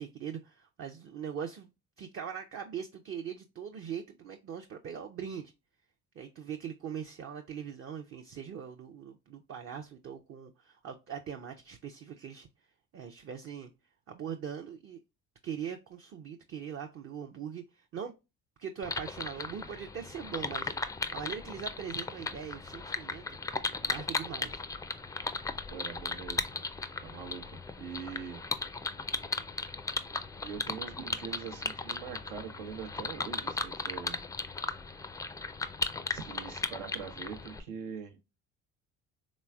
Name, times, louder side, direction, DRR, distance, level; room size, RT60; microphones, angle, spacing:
voice 1, 0.0-1.7 2.0-5.5 6.2-12.5 12.9-13.7 14.1-15.0 15.4-18.1 18.6-24.6, right 8 dB, 40° right, 0.5 m, -41 dB
sound 1, 18.8-37.6, left 3 dB, 10° left, 0.3 m, -37 dB
voice 2, 25.7-26.6 27.0-28.4 30.4-34.2 36.1-38.2, right 7 dB, 85° right, 0.9 m, -43 dB
3.4 x 3.0 x 2.2 m
supercardioid pair, 65°, 36 cm